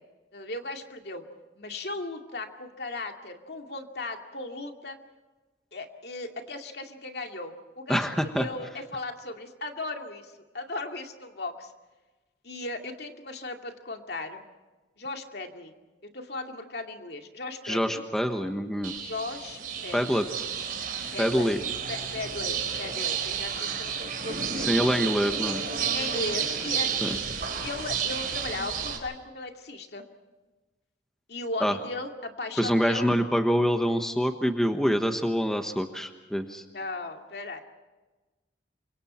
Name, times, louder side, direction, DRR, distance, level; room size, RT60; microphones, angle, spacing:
voice 1, 0.3-1.2 1.6-5.0 5.7-11.7 12.4-14.4 15.0-15.7 16.1-18.0 19.0-20.2 21.1-21.5 21.9-24.8 25.9-27.2 27.6-30.0 31.3-33.1 36.7-37.6, left 2 dB, 60° left, 3 dB, 2.4 m, -37 dB
voice 2, 7.9-8.5 17.6-19.1 19.9-20.3 21.2-21.6 24.6-25.6 27.0-27.2 31.6-31.7 32.6-36.6, equal, 5° left, 5 dB, 1.2 m, -26 dB
sound 1, 18.8-29.0, right 7 dB, 50° right, 4.1 m, -31 dB
28.5 x 25.5 x 4.4 m, 1.2 s
head